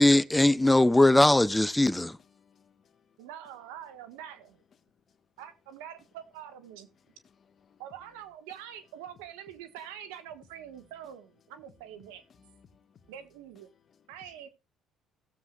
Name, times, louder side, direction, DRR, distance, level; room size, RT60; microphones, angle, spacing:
voice 1, 0.0-2.2, left 1 dB, 10° left, 0.6 m, -20 dB
voice 2, 2.2-3.2 7.2-7.5 12.4-13.1 13.9-14.0, left 6 dB, 50° left, 1.4 m, -63 dB
voice 3, 3.2-4.6 5.4-6.9 7.8-12.2 13.1-13.7 14.1-14.5, right 10 dB, 90° right, 1.3 m, -45 dB
16.5 x 7.5 x 2.3 m
supercardioid pair, 75°, 0 cm